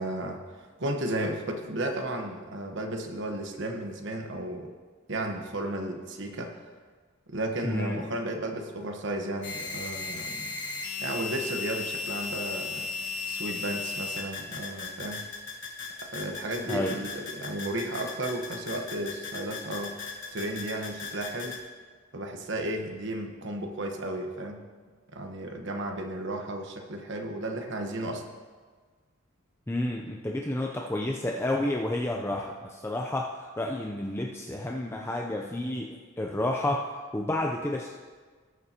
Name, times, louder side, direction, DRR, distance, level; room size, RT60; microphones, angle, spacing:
voice 1, 0.0-4.7 5.1-6.7 7.3-10.6 11.0-12.9 13.3-15.3 16.1-20.0 20.3-21.6 22.1-24.6 25.1-28.2, right 1 dB, 60° right, 3 dB, 1.1 m, -34 dB
voice 2, 7.6-8.0 16.7-17.0 29.7-37.9, left 1 dB, 10° left, 0 dB, 0.5 m, -30 dB
sound 1, 9.4-21.6, left 4 dB, 60° left, 1.5 m, -36 dB
19.5 x 6.9 x 2.9 m, 1.5 s
head